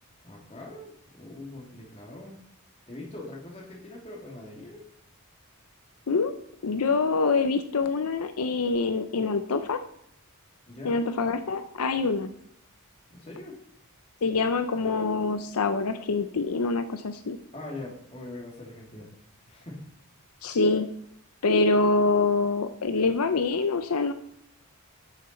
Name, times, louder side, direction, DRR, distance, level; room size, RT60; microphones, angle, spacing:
voice 1, 0.2-2.4 2.9-4.8 10.7-11.0 13.1-13.6 17.5-19.1 19.4-19.8, left 2 dB, 30° left, -2 dB, 2.7 m, -42 dB
voice 2, 6.6-9.8 10.8-12.3 14.2-17.4 20.4-20.9 21.4-24.1, left 3 dB, 85° left, 9 dB, 0.6 m, -25 dB
11.0 x 7.1 x 4.4 m, 0.70 s
head